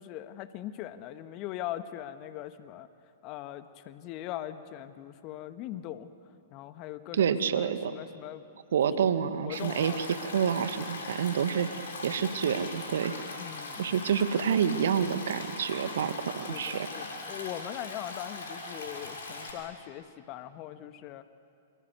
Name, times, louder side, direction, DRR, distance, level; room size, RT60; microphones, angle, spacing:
voice 1, 0.0-2.9 3.2-6.1 6.5-8.4 9.4-10.0 13.4-14.0 16.5-21.2, left 13 dB, 40° left, 10 dB, 1.4 m, -41 dB
voice 2, 7.1-7.9 8.7-13.2 13.8-16.9, right 7 dB, 65° right, 10 dB, 1.8 m, -28 dB
Stream, 9.5-19.5, left 3 dB, 65° left, 6.6 m, -40 dB
28.5 x 25.5 x 8.2 m, 2.4 s
figure-of-eight pair, 110°, 0 cm